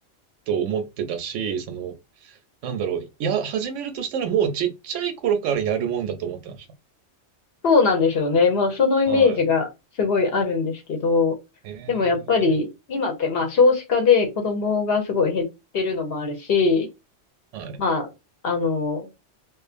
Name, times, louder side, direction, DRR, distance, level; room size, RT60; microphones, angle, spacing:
voice 1, 0.5-6.7 9.1-9.4 11.6-12.5 17.5-17.8, right 8 dB, 80° right, 0.9 m, -27 dB
voice 2, 7.6-9.7 10.0-11.4 11.9-15.5 15.7-16.9 17.8-18.1 18.4-19.0, left 4 dB, 55° left, 0.9 m, -21 dB
2.5 x 2.4 x 2.5 m
omnidirectional pair, 1.3 m